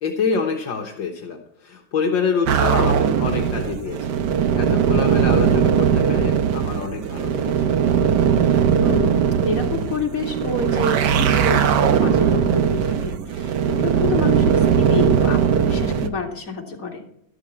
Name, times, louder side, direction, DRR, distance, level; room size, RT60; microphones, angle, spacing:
voice 1, 0.0-4.2 4.5-7.7, left 5 dB, 70° left, 3 dB, 1.8 m, -26 dB
sound 1, 2.5-16.1, right 8 dB, 65° right, 1.4 m, -19 dB
voice 2, 8.8-17.1, left 3 dB, 45° left, 1 dB, 2.6 m, -28 dB
13.0 x 12.5 x 4.4 m, 0.72 s
omnidirectional pair, 2.2 m